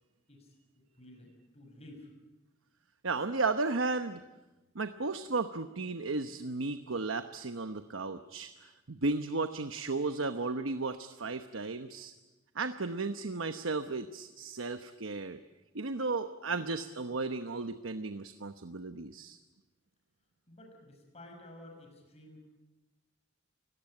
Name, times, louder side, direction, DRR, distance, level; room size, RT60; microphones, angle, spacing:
voice 1, 1.0-2.1 20.5-22.4, left 1 dB, 35° left, 2 dB, 5.9 m, -52 dB
voice 2, 3.0-4.2 4.7-12.1 12.5-15.4 15.7-19.4, right 3 dB, 80° right, 9 dB, 1.0 m, -34 dB
29.5 x 18.0 x 8.9 m, 1.1 s
head